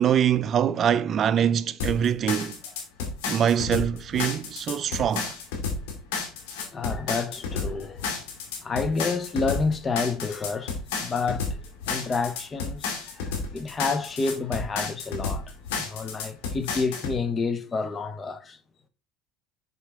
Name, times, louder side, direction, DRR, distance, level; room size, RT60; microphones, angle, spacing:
voice 1, 0.0-2.6 3.3-5.4, right 9 dB, 45° right, 0.4 m, -24 dB
sound 1, 1.8-17.2, left 4 dB, 90° left, 2.1 m, -31 dB
voice 2, 6.6-8.1 8.6-11.6 11.9-18.6, left 4 dB, 30° left, 0.8 m, -29 dB
6.6 x 4.5 x 3.5 m
supercardioid pair, 105°, 0 cm